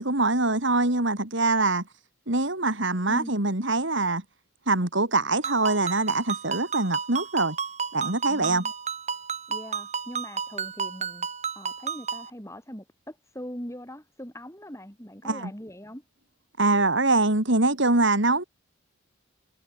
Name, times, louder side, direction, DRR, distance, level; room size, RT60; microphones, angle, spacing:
voice 1, 0.0-1.8 2.3-4.2 4.7-7.6 7.9-8.6 15.2-15.5 16.6-18.4, right 2 dB, 60° right, 2.9 m, -24 dB
Ringtone, 5.4-12.3, right 6 dB, 30° right, 3.9 m, -32 dB
voice 2, 8.3-8.7 9.5-11.3 11.5-16.0, equal, 15° left, 6.3 m, -41 dB
head